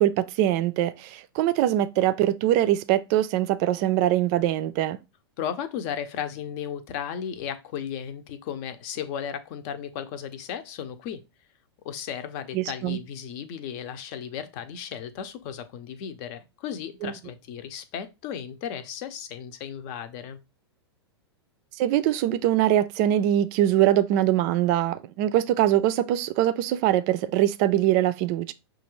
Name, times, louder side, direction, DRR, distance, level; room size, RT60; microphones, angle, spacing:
voice 1, 0.0-5.0 12.5-13.0 17.0-17.1 21.8-28.5, right 12 dB, 40° right, 0.5 m, -23 dB
voice 2, 5.4-11.2 11.8-20.4, left 8 dB, 45° left, 0.7 m, -35 dB
5.8 x 2.5 x 3.1 m
hypercardioid pair, 105°, 14 cm